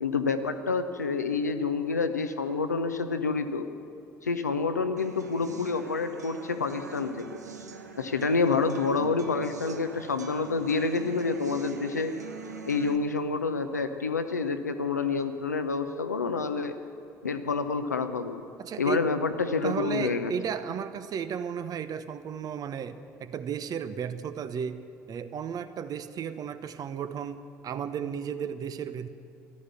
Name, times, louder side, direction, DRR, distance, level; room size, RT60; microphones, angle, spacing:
voice 1, 0.0-3.7 4.2-7.4 8.0-12.2 12.7-16.8 17.2-18.4 18.8-20.3, left 4 dB, 90° left, 9 dB, 0.7 m, -28 dB
sound 1, 5.0-13.0, right 5 dB, 90° right, 0.7 m, -44 dB
voice 2, 18.6-19.1 19.6-29.1, right 7 dB, 45° right, 12 dB, 0.9 m, -34 dB
14.0 x 12.5 x 8.2 m, 2.5 s
figure-of-eight pair, 55°, 9 cm